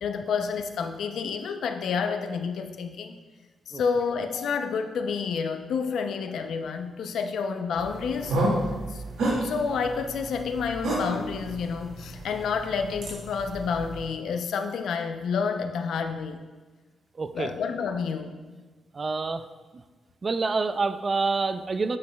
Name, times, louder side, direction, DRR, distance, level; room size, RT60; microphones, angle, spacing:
voice 1, 0.0-3.2 3.7-8.4 8.9-9.0 9.4-16.4 17.3-18.3, left 5 dB, 80° left, 7 dB, 0.5 m, -29 dB
sound 1, 7.8-14.0, right 1 dB, 90° right, 2.1 m, -31 dB
voice 2, 17.2-17.5 18.9-19.4 20.2-22.0, right 4 dB, 35° right, 11 dB, 0.3 m, -27 dB
8.4 x 6.3 x 2.3 m, 1.3 s
cardioid pair, 110°, 0 cm